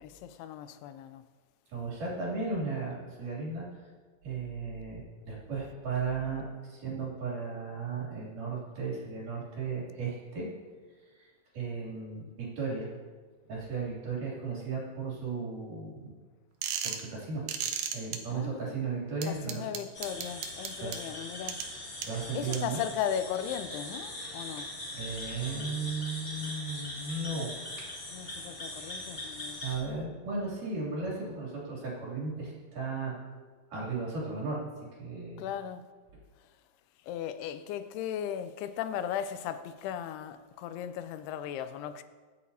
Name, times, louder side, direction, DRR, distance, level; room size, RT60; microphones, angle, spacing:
voice 1, 0.0-1.2 18.3-18.8 19.2-21.7 22.3-24.7 28.1-29.6 35.4-35.9 37.0-42.0, left 9 dB, 85° left, 2.6 m, -37 dB
voice 2, 1.7-3.7 4.2-10.5 11.2-12.9 13.5-16.1 16.8-17.4 17.9-19.7 20.8-21.0 22.1-22.8 24.9-27.5 29.6-33.2 33.7-34.7 35.0-35.5, right 4 dB, 55° right, 4.2 m, -35 dB
sound 1, 16.6-17.1 17.5-18.2 19.2-21.0 21.5-21.6 22.0-22.1 22.5-22.6, right 8 dB, 75° right, 2.0 m, -33 dB
sound 2, 19.9-29.7, left 1 dB, 50° left, 0.6 m, -41 dB
23.0 x 8.4 x 2.8 m
omnidirectional pair, 4.6 m